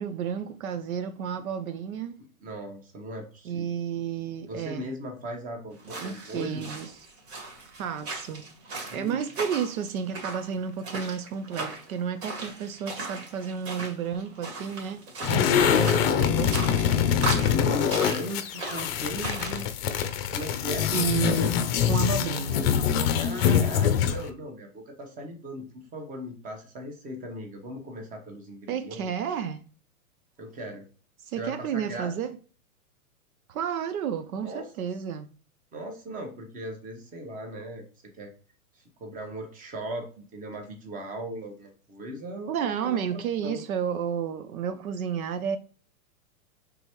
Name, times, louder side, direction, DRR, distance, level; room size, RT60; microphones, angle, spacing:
voice 1, 0.0-2.2 3.4-4.9 6.0-6.9 7.8-8.4 8.9-17.1 20.9-22.7 28.7-29.6 31.2-32.4 33.5-35.3 42.5-45.6, right 8 dB, 70° right, 0.6 m, -31 dB
voice 2, 2.4-3.7 4.5-6.7 8.9-9.2 17.5-20.0 20.3-20.9 23.2-29.1 30.4-30.8 31.4-32.1 34.4-34.7 35.7-37.9 38.2-38.3 38.7-43.6, equal, 20° right, 1.0 m, -38 dB
sound 1, 5.8-19.6, right 3 dB, 45° right, 1.8 m, -38 dB
sound 2, 15.2-24.3, left 8 dB, 45° left, 0.6 m, -24 dB
5.0 x 3.5 x 3.0 m
hypercardioid pair, 130°, 43 cm